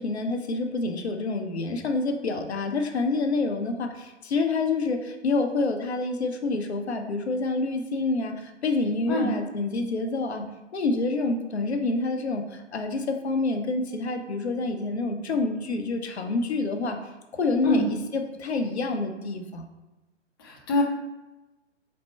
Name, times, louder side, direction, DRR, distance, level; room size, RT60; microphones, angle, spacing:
voice 1, 0.0-10.5 10.7-17.0 17.3-19.6, left 3 dB, 60° left, 5 dB, 0.7 m, -27 dB
voice 2, 20.4-20.8, left 3 dB, 20° left, -2 dB, 0.4 m, -24 dB
4.2 x 2.2 x 4.3 m, 1.1 s
figure-of-eight pair, 125°, 36 cm